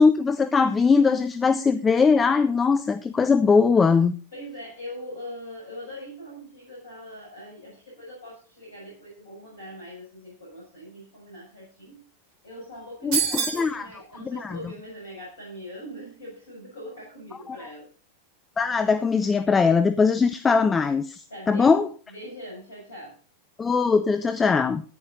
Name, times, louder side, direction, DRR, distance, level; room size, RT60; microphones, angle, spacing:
voice 1, 0.0-4.1 13.0-13.9 14.2-14.5 17.5-17.7 18.6-21.9 23.6-24.8, left 5 dB, 15° left, 0.8 m, -21 dB
voice 2, 4.3-12.0 12.4-17.9 21.3-23.2, equal, 70° left, 6.8 m, -41 dB
sound 1, 13.1-13.7, right 7 dB, 45° right, 3.3 m, -25 dB
14.0 x 10.5 x 4.0 m
figure-of-eight pair, 90°, 0 cm